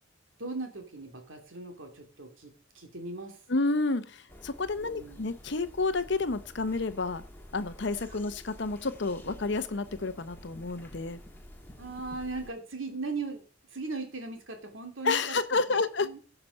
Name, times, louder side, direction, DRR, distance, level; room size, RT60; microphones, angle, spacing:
voice 1, 0.4-3.4 4.8-5.2 11.8-13.4 13.7-15.3 15.7-16.2, right 3 dB, 75° right, 4 dB, 2.6 m, -38 dB
voice 2, 3.5-7.2 7.5-11.2 15.0-16.1, left 3 dB, 60° left, 12 dB, 0.8 m, -30 dB
sound 1, 4.3-12.5, left 1 dB, 10° left, 1.4 m, -50 dB
16.0 x 5.9 x 5.4 m, 0.42 s
head